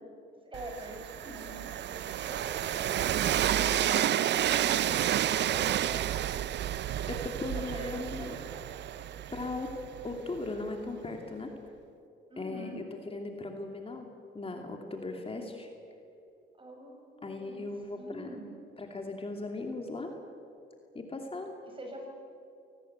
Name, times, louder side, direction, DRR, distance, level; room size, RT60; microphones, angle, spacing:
voice 1, 0.4-2.9 3.5-6.1 7.2-8.6 12.3-12.8 16.6-17.7 18.0-18.5 21.7-22.1, right 1 dB, 25° right, 2 dB, 7.0 m, -44 dB
Train, 0.5-10.4, right 11 dB, 60° right, 0.6 m, -30 dB
voice 2, 7.1-8.4 9.3-9.8 10.0-11.5 12.4-14.1 14.3-15.7 17.2-18.3 18.8-20.1 20.9-21.6, left 2 dB, 30° left, 3 dB, 2.6 m, -38 dB
24.5 x 19.0 x 9.0 m, 2.7 s
cardioid pair, 90°, 20 cm